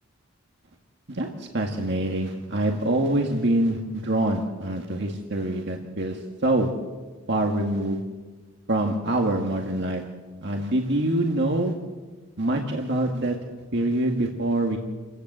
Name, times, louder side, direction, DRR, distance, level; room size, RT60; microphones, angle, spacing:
voice 1, 1.1-6.7 7.3-8.0 8.7-10.0 10.4-11.7 12.4-13.4 13.7-14.8, right 1 dB, 55° right, 2 dB, 1.9 m, -25 dB
28.5 x 15.5 x 8.1 m, 1.3 s
head